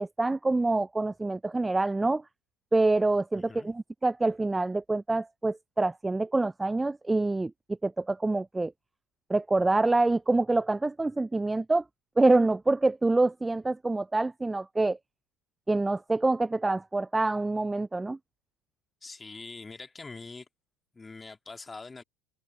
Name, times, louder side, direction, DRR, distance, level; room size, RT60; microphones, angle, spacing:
voice 1, 0.0-2.2 2.7-8.7 9.3-11.8 12.2-15.0 15.7-18.2, right 2 dB, 10° right, 0.3 m, -26 dB
voice 2, 3.3-3.7 19.0-20.5 20.9-22.0, left 3 dB, 20° left, 1.8 m, -44 dB
hypercardioid pair, 75°, 0 cm